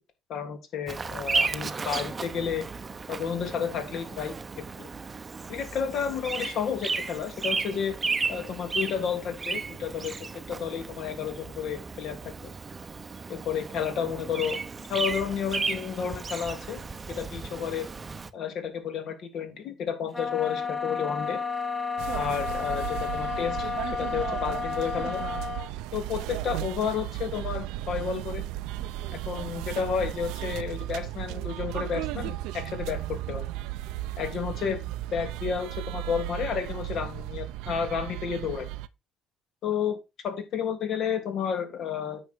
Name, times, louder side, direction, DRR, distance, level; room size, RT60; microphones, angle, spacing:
voice 1, 0.3-2.7 3.1-4.3 4.8-4.9 5.5-7.9 8.3-10.2 10.5-12.5 13.3-14.6 14.9-16.8 17.1-17.9 18.3-21.4 22.1-25.2 25.9-28.4 29.3-33.5 34.2-34.8 35.1-38.7 39.6-42.2, left 7 dB, 60° left, 6 dB, 3.1 m, -31 dB
Bird vocalization bird call bird song, 0.9-18.3, right 4 dB, 25° right, 0.8 m, -34 dB
sound 1, 20.1-25.7, left 5 dB, 10° left, 3.0 m, -32 dB
sound 2, 22.0-38.9, right 16 dB, 85° right, 0.6 m, -35 dB
9.3 x 6.2 x 4.5 m, 0.25 s
cardioid pair, 120°, 0 cm